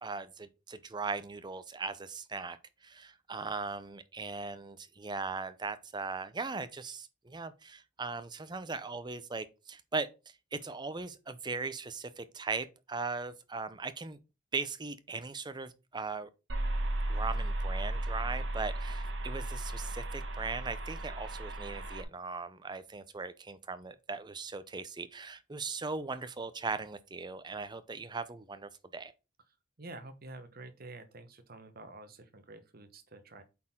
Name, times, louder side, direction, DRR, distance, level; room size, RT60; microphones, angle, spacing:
voice 1, 0.0-2.6 2.8-10.1 10.5-14.2 14.5-16.3 17.1-29.1, right 4 dB, 25° right, 0.6 m, -39 dB
sound 1, 16.5-22.0, right 1 dB, 75° right, 1.4 m, -35 dB
voice 2, 29.8-33.4, right 2 dB, 50° right, 1.1 m, -49 dB
8.4 x 4.3 x 3.7 m
head